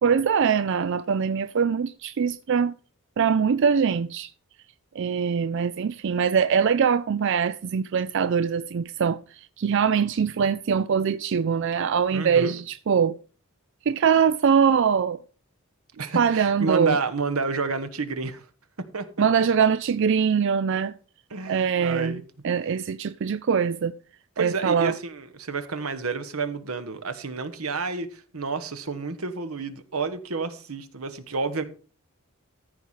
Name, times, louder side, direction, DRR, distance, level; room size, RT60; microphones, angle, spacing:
voice 1, 0.0-2.7 3.2-4.3 5.0-9.2 9.6-13.2 13.9-15.2 16.1-17.0 19.2-20.9 21.5-22.2 22.4-23.9 24.4-24.9, right 6 dB, 60° right, 0.4 m, -22 dB
voice 2, 12.1-12.6 16.0-18.5 18.8-19.5 21.3-22.2 24.4-31.6, right 4 dB, 90° right, 1.2 m, -30 dB
14.0 x 4.8 x 5.6 m
head